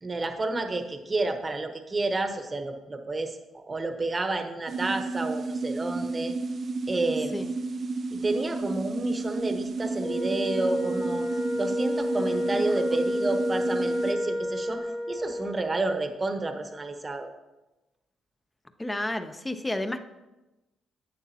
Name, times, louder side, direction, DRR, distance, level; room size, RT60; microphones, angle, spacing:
voice 1, 0.0-6.3 6.9-7.4 8.1-11.3 11.5-17.3, right 2 dB, 25° right, 6 dB, 1.0 m, -30 dB
sound 1, 4.7-14.1, right 3 dB, 50° right, 0.4 m, -32 dB
Wind instrument woodwind instrument, 10.0-15.6, left 1 dB, 45° left, 2.1 m, -30 dB
voice 2, 18.8-20.0, left 1 dB, 15° left, 8 dB, 0.7 m, -31 dB
11.0 x 8.2 x 2.8 m, 1.0 s
cardioid pair, 90°, 0 cm